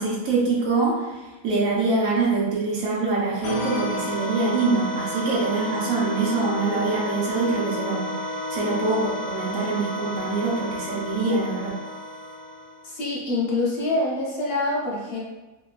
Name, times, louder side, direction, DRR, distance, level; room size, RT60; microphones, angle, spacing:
voice 1, 0.0-8.1 8.5-11.7, right 3 dB, 70° right, -4 dB, 1.0 m, -24 dB
sound 1, 3.4-12.9, left 1 dB, 75° left, 1.1 m, -31 dB
voice 2, 12.8-15.2, left 2 dB, 60° left, -5 dB, 0.6 m, -25 dB
2.8 x 2.1 x 2.3 m, 1.1 s
omnidirectional pair, 1.6 m